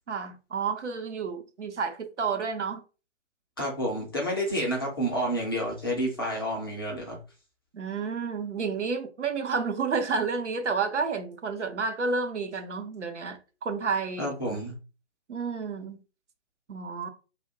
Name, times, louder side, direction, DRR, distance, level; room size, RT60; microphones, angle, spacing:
voice 1, 0.1-2.8 7.7-14.3 15.3-16.0 16.7-17.1, right 5 dB, 75° right, 0.7 m, -30 dB
voice 2, 3.6-7.2 14.2-14.8, equal, 20° left, 0.4 m, -29 dB
2.5 x 2.1 x 3.6 m
figure-of-eight pair, 135°, 36 cm